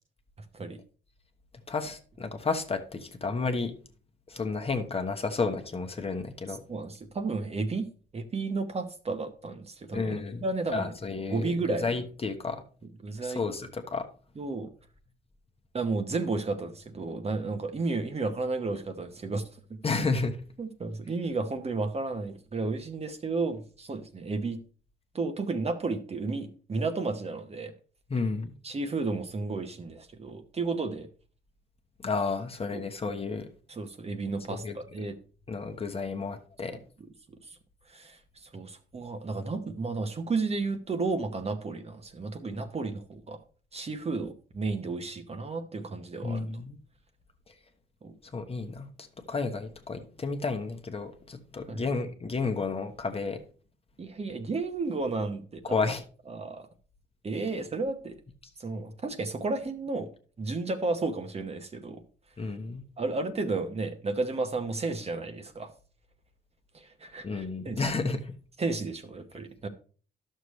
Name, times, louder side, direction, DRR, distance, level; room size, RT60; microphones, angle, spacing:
voice 1, 1.7-3.7 4.3-6.6 9.9-10.5 10.7-12.6 13.2-14.1 19.8-20.4 28.1-28.5 32.0-33.5 34.5-34.8 35.5-36.8 46.2-46.8 48.2-48.9 49.3-53.4 55.6-56.0 62.4-62.8 67.2-68.3, left 4 dB, 30° left, 1.0 m, -31 dB
voice 2, 6.7-7.9 8.1-10.9 11.3-11.9 13.0-13.4 14.4-14.7 15.7-19.4 20.6-24.6 25.1-27.7 28.6-31.1 32.7-32.8 33.8-35.2 37.9-38.2 38.5-43.4 43.7-46.4 48.0-48.1 51.7-51.8 54.0-55.7 56.3-56.6 57.2-58.2 58.6-60.1 60.4-62.0 62.4-62.5 63.0-65.7 66.7-67.9 68.6-69.7, right 3 dB, 30° right, 1.0 m, -32 dB
11.0 x 6.6 x 3.1 m
cardioid pair, 90°, 20 cm